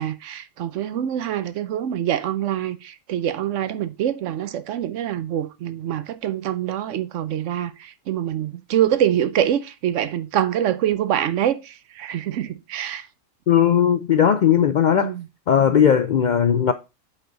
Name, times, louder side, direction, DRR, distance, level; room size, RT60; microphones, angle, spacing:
voice 1, 0.0-13.1 15.0-15.3 15.7-15.8, right 10 dB, 75° right, 1.0 m, -25 dB
voice 2, 13.5-15.1 15.5-16.7, left 8 dB, 65° left, 0.4 m, -17 dB
8.0 x 4.3 x 3.9 m
omnidirectional pair, 1.3 m